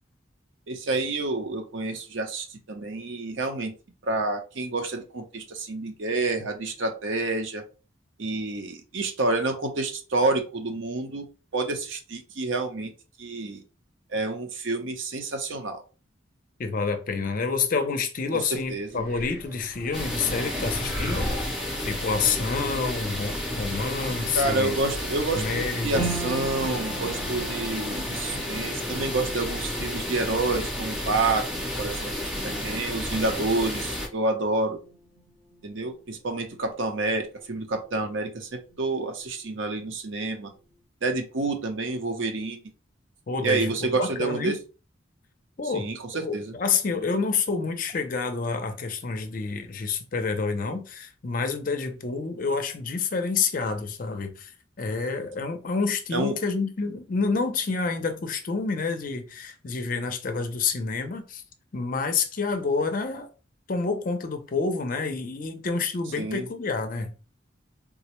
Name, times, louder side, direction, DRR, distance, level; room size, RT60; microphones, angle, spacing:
voice 1, 0.7-3.7 4.0-7.6 8.2-11.3 11.5-12.9 13.2-13.6 14.1-15.8 18.3-19.0 24.3-31.5 31.8-32.1 32.4-34.8 35.6-40.5 41.0-42.6 43.4-44.6 45.7-46.5 56.1-56.4 66.2-66.5, right 3 dB, 75° right, 0.7 m, -28 dB
voice 2, 16.6-24.8 25.3-26.1 43.3-44.6 45.6-54.5 54.8-61.4 61.7-63.3 63.7-67.1, left 4 dB, 45° left, 0.5 m, -28 dB
sound 1, 18.9-22.3, left 1 dB, 50° right, 0.9 m, -35 dB
sound 2, 19.9-34.1, left 1 dB, 5° right, 0.8 m, -32 dB
sound 3, 25.9-38.4 38.6-39.6 40.0-40.1, right 2 dB, 25° right, 1.0 m, -41 dB
3.6 x 2.1 x 2.9 m
head